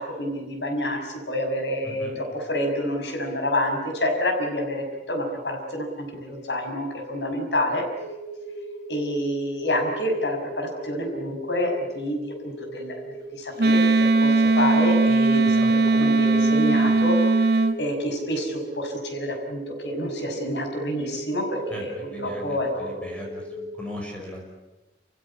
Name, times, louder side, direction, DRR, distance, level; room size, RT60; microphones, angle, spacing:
voice 1, 0.0-7.8 8.9-13.0 13.3-17.2 17.8-21.9 22.2-22.9, left 1 dB, 80° left, 3 dB, 6.1 m, -28 dB
voice 2, 1.8-2.2 15.4-15.7 21.7-24.5, left 1 dB, 5° left, -1 dB, 5.8 m, -39 dB
sound 1, 7.9-23.8, right 2 dB, 60° left, 7.7 m, -38 dB
Wind instrument woodwind instrument, 13.6-17.8, right 3 dB, 60° right, 1.3 m, -19 dB
28.5 x 16.5 x 10.0 m, 1.1 s
head